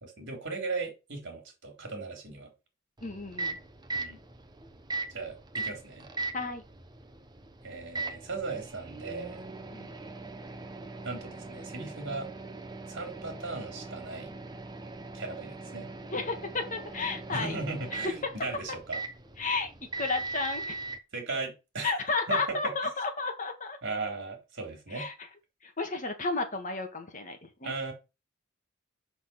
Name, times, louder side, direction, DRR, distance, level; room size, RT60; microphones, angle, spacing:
voice 1, 0.0-2.5 3.9-4.2 5.1-6.1 7.6-9.4 11.0-12.3 12.9-14.3 15.1-15.9 17.3-19.0 21.1-22.0 22.3-22.7 23.8-25.1 27.6-27.9, right 3 dB, 60° right, 3.9 m, -37 dB
voice 2, 3.0-3.6 6.3-6.6 9.7-9.9 16.1-17.6 19.4-19.7 20.0-20.8 21.8-23.8 24.9-25.1 25.6-27.7, left 3 dB, 40° left, 1.8 m, -32 dB
Microwave oven, 3.0-21.0, right 3 dB, 20° right, 0.9 m, -40 dB
6.0 x 5.9 x 7.2 m
head